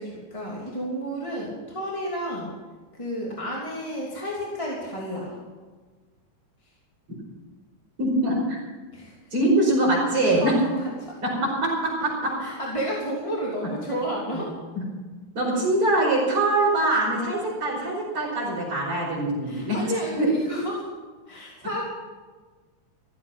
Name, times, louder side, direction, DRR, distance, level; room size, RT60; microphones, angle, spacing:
voice 1, 0.0-2.5 2.9-5.4 8.9-9.2 10.4-11.1 12.4-14.5 19.4-20.9 21.3-21.8, equal, 10° left, -4 dB, 2.9 m, -31 dB
voice 2, 8.0-8.6 9.3-10.5 11.2-12.3 14.3-14.4 15.3-19.8 20.2-20.3, right 1 dB, 45° right, -10 dB, 6.3 m, -23 dB
15.0 x 15.0 x 5.8 m, 1.3 s
omnidirectional pair, 3.4 m